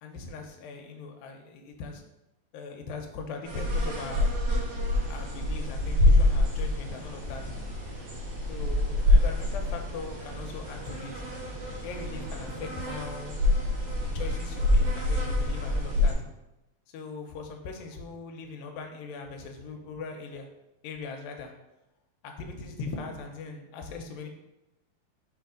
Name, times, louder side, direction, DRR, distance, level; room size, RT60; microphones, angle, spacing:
voice 1, 0.0-2.0 2.5-4.3 5.1-7.5 8.5-11.2 11.8-13.3 14.1-16.2 16.9-20.5 20.8-21.5 22.2-24.3, left 4 dB, 90° left, 3 dB, 2.4 m, -40 dB
sound 1, 3.5-16.1, left 1 dB, 55° right, 2.0 m, -26 dB
6.0 x 3.4 x 5.0 m, 0.94 s
omnidirectional pair, 4.1 m